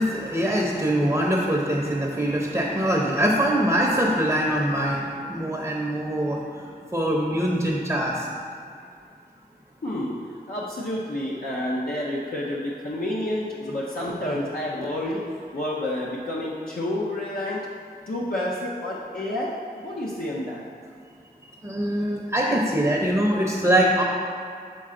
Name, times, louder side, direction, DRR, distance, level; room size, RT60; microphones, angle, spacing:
voice 1, 0.0-8.3 21.6-24.0, right 1 dB, 15° right, -2 dB, 0.7 m, -23 dB
voice 2, 9.8-15.2 15.5-17.7 18.1-20.7, left 1 dB, 60° left, -5 dB, 0.7 m, -29 dB
6.9 x 4.2 x 3.7 m, 2.3 s
wide cardioid pair, 70°, 17 cm